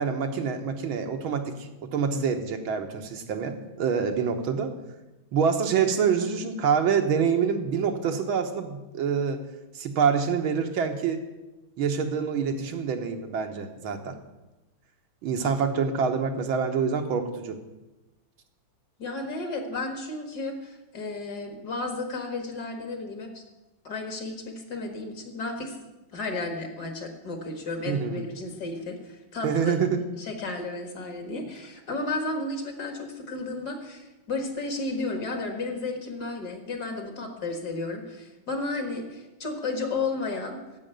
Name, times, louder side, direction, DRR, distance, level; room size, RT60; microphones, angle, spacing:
voice 1, 0.0-4.7 5.3-9.4 9.8-11.2 11.8-14.2 15.2-17.6 27.9-28.2 29.4-30.0, right 6 dB, 85° right, 5 dB, 2.0 m, -26 dB
voice 2, 19.0-23.4 23.8-25.8 26.1-29.8 30.2-40.6, left 3 dB, 55° left, 5 dB, 2.2 m, -33 dB
10.5 x 7.7 x 9.1 m, 1.1 s
omnidirectional pair, 2.2 m